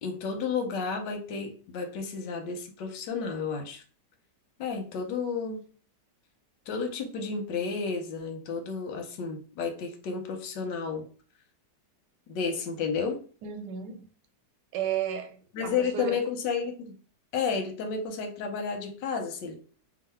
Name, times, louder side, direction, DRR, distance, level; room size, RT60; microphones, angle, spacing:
voice 1, 0.0-3.8 4.6-5.6 6.7-11.0 12.3-13.2 15.5-17.0 17.3-19.6, left 5 dB, 85° left, 1.4 m, -32 dB
voice 2, 13.4-14.1 14.7-16.3, right 9 dB, 80° right, 1.2 m, -33 dB
3.1 x 2.4 x 4.2 m
omnidirectional pair, 1.9 m